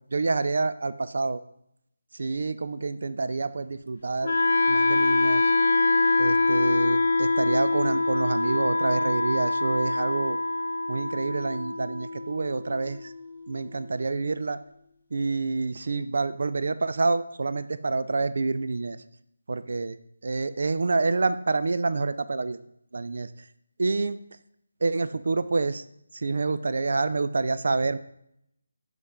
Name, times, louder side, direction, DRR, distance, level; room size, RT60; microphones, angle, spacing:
voice 1, 0.1-1.4 2.1-4.3 4.7-5.4 6.2-10.4 10.9-13.1 13.5-14.6 15.1-19.0 19.5-20.0 20.2-22.6 22.9-23.3 23.8-24.2 24.8-25.8 26.1-28.0, right 3 dB, 65° right, 13 dB, 0.4 m, -27 dB
Wind instrument woodwind instrument, 4.2-14.2, left 3 dB, 60° left, 0.6 m, -25 dB
7.0 x 4.0 x 3.3 m, 0.74 s
figure-of-eight pair, 160°, 0 cm